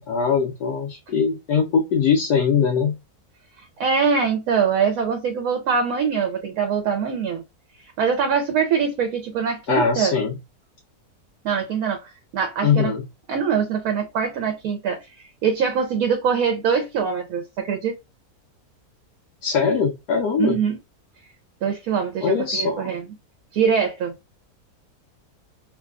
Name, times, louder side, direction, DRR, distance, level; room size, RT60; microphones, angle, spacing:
voice 1, 0.0-3.0 9.7-10.3 12.6-13.1 19.4-20.6 22.2-22.9, left 6 dB, 85° left, 1.2 m, -21 dB
voice 2, 3.8-7.4 8.0-10.2 11.4-12.0 12.3-12.9 13.3-17.9 20.4-20.8 21.6-23.0 23.5-24.1, right 6 dB, 70° right, 1.0 m, -23 dB
3.1 x 2.2 x 2.3 m
omnidirectional pair, 1.7 m